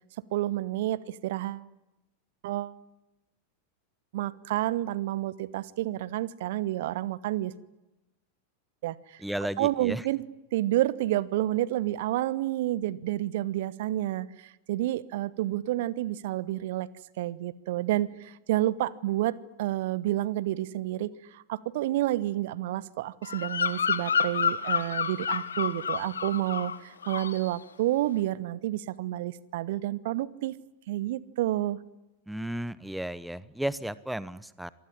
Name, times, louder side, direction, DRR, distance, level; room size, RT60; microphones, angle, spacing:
voice 1, 0.3-1.6 2.4-2.8 4.1-7.5 8.8-9.2 9.6-10.2 10.5-16.9 17.2-30.6 30.9-31.8, right 15 dB, 55° right, 20 dB, 1.1 m, -29 dB
voice 2, 9.2-10.0 32.3-34.7, right 1 dB, 5° right, 19 dB, 0.9 m, -34 dB
Bird vocalization bird call bird song, 23.2-26.8 27.0-27.5, left 6 dB, 70° left, 1.6 m, -29 dB
26.5 x 19.5 x 10.0 m, 0.97 s
figure-of-eight pair, 90°, 0 cm